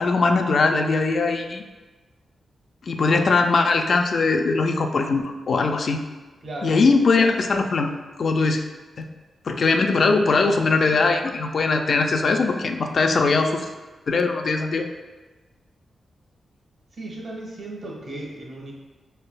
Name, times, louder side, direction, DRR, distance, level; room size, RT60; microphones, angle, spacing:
voice 1, 0.0-1.6 2.9-6.0 6.6-7.9 8.2-8.6 9.0-9.1 9.5-13.7 14.1-14.9, left 3 dB, 55° left, 5 dB, 0.3 m, -20 dB
voice 2, 6.4-6.8 9.9-10.0 16.9-18.7, right 2 dB, 55° right, -2 dB, 1.0 m, -35 dB
4.3 x 3.3 x 2.2 m, 1.2 s
cardioid pair, 85°, 0 cm